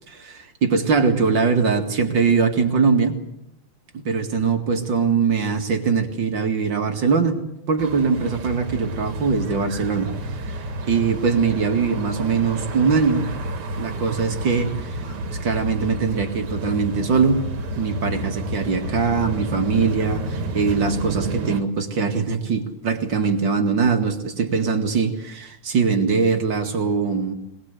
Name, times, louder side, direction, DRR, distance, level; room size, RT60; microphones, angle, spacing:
voice 1, 0.1-3.2 3.9-10.1 10.5-13.3 13.8-15.0 15.4-17.4 17.8-27.3, right 5 dB, 55° right, 5 dB, 2.7 m, -22 dB
sound 1, 7.8-21.6, right 2 dB, 80° right, 2.6 m, -30 dB
21.5 x 21.0 x 8.2 m, 0.79 s
omnidirectional pair, 2.4 m